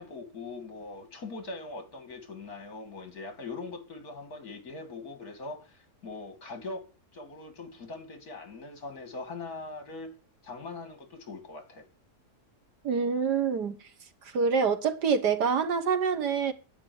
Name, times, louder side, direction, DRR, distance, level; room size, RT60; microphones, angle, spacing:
voice 1, 0.0-6.8 7.1-10.1 10.4-11.9, left 3 dB, 65° left, 3.2 m, -41 dB
voice 2, 12.8-13.8 14.3-16.5, right 6 dB, 90° right, 2.1 m, -26 dB
10.5 x 9.8 x 9.6 m
omnidirectional pair, 1.7 m